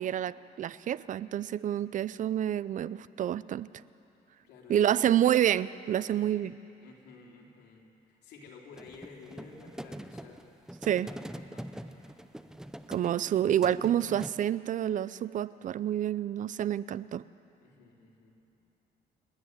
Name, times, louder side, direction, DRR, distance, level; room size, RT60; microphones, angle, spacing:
voice 1, 0.0-3.7 4.7-6.6 10.8-11.1 12.9-17.2, right 11 dB, 50° right, 18 dB, 0.5 m, -28 dB
voice 2, 4.4-5.1 6.0-6.4 6.8-10.5 10.8-12.3 17.6-18.6, left 5 dB, 90° left, 0 dB, 3.5 m, -52 dB
sound 1, 8.8-14.3, right 1 dB, 5° right, 0.6 m, -44 dB
29.5 x 10.0 x 9.5 m, 2.8 s
cardioid pair, 115°, 17 cm